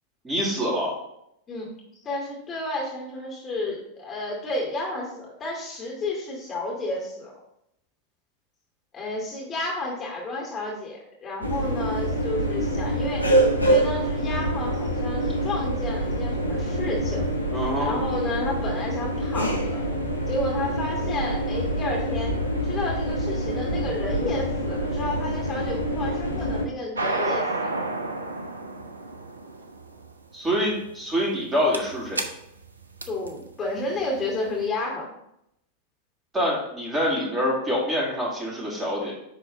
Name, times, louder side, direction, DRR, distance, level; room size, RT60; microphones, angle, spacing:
voice 1, 0.2-0.9 17.5-18.0 30.3-32.2 36.3-39.1, equal, 15° right, -5 dB, 2.8 m, -25 dB
voice 2, 2.0-7.3 8.9-13.3 13.6-17.3 17.8-19.8 20.3-22.3 22.6-27.8 33.1-35.1, left 2 dB, 25° left, -3 dB, 2.4 m, -31 dB
sound 1, 11.4-26.7, right 1 dB, 90° left, 1.0 m, -26 dB
sound 2, 27.0-34.5, right 2 dB, 75° right, 0.6 m, -31 dB
10.0 x 3.9 x 3.8 m, 0.80 s
figure-of-eight pair, 90°, 0 cm